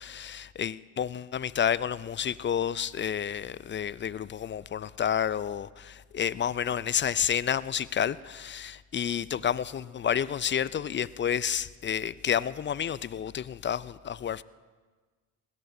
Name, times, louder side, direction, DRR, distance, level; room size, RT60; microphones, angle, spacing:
voice 1, 0.0-14.4, left 8 dB, 25° left, 0.4 m, -30 dB
24.0 x 17.0 x 2.7 m
hypercardioid pair, 45°, 47 cm